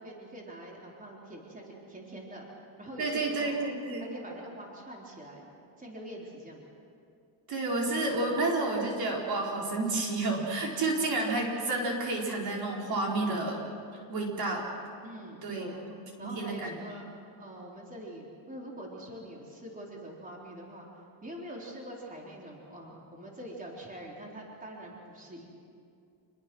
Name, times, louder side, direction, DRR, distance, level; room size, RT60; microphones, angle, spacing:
voice 1, 0.0-3.6 4.0-5.5 5.8-6.6 15.0-15.8 16.2-17.0 17.4-20.9 21.2-25.5, right 1 dB, 20° right, -2 dB, 4.0 m, -44 dB
voice 2, 3.0-4.0 7.5-13.6 14.1-14.7 15.4-15.7 16.2-16.8, right 2 dB, 50° right, -1 dB, 4.5 m, -30 dB
28.0 x 21.5 x 6.3 m, 2.5 s
cardioid pair, 130°, 45 cm